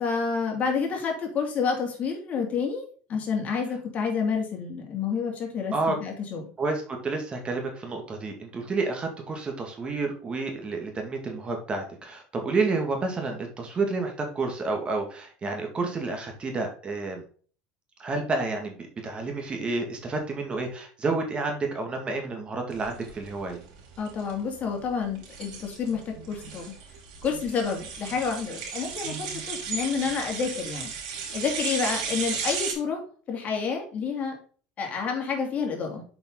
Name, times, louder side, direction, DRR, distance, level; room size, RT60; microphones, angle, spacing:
voice 1, 0.0-6.5 24.0-26.7 27.2-30.9 31.3-33.0 33.3-34.4 34.8-36.0, left 5 dB, 40° left, 1 dB, 2.7 m, -29 dB
voice 2, 6.6-17.2 18.0-23.6, right 3 dB, 30° right, 3 dB, 2.0 m, -30 dB
sound 1, 22.8-32.7, right 6 dB, 80° right, 3.5 m, -35 dB
6.8 x 5.7 x 3.9 m, 0.42 s
supercardioid pair, 100°, 4 cm